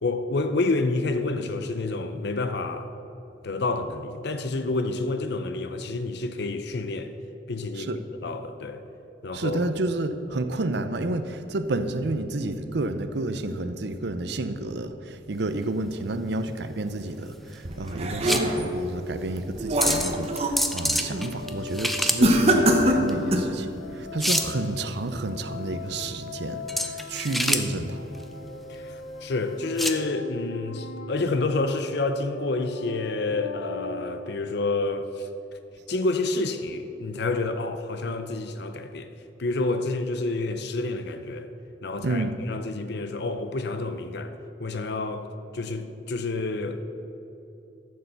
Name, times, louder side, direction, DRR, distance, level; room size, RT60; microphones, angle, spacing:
voice 1, 0.0-2.9 3.4-7.1 7.5-7.9 8.2-8.8 9.2-9.6 28.7-35.3 35.9-39.1 39.4-41.5 41.8-44.3 44.6-45.3 45.5-46.8, left 3 dB, 65° left, 0.6 m, -28 dB
voice 2, 9.3-28.0 42.0-42.4, right 2 dB, 65° right, 0.6 m, -30 dB
sound 1, 15.3-30.0, equal, ahead, 0.5 m, -30 dB
sound 2, 17.6-18.8 19.3-20.6 21.0-21.3 22.2-23.6, right 1 dB, 35° right, 1.0 m, -23 dB
sound 3, 19.6-35.0, left 4 dB, 80° left, 1.3 m, -39 dB
13.5 x 6.7 x 6.8 m
head